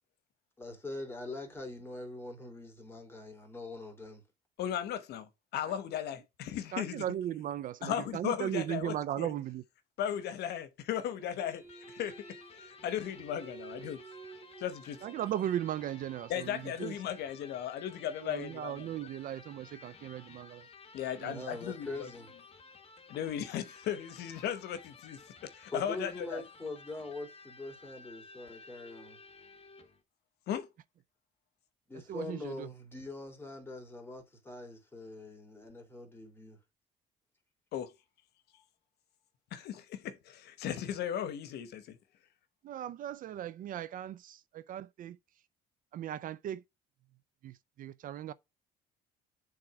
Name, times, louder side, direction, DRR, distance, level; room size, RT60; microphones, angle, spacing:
voice 1, 0.6-4.2 21.3-22.3 25.7-29.2 31.9-36.6, left 2 dB, 15° left, 3.0 m, -43 dB
voice 2, 4.6-7.0 7.8-9.3 10.0-11.6 11.9-12.3 12.6-14.0 14.6-15.0 16.3-18.9 20.9-22.1 23.1-26.4 30.5-30.7 37.7-37.9 39.5-42.0, left 10 dB, 75° left, 1.0 m, -36 dB
voice 3, 6.7-9.6 15.0-16.9 18.2-20.7 21.2-21.5 32.1-32.7 42.6-45.2 45.9-46.6 47.4-48.3, right 11 dB, 55° right, 0.4 m, -37 dB
sound 1, 11.0-16.8, right 5 dB, 20° right, 2.1 m, -53 dB
Electric guitar, 11.6-30.0, left 4 dB, 35° left, 1.4 m, -55 dB
7.6 x 3.7 x 4.8 m
cardioid pair, 110°, 17 cm